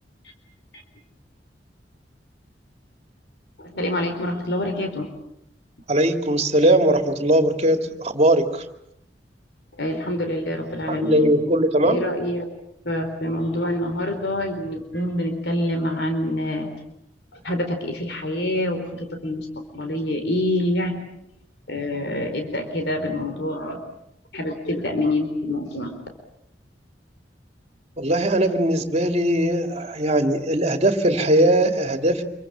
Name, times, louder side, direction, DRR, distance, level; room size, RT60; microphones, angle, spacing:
voice 1, 3.6-5.1 9.8-11.4 11.8-12.4 12.8-16.7 17.3-19.5 19.7-21.0 21.7-23.8 24.3-25.9, left 1 dB, 70° left, 6 dB, 4.2 m, -26 dB
voice 2, 5.9-8.6 10.9-12.0 28.0-32.2, right 1 dB, 40° right, 6 dB, 2.5 m, -20 dB
27.0 x 23.5 x 7.4 m, 0.79 s
head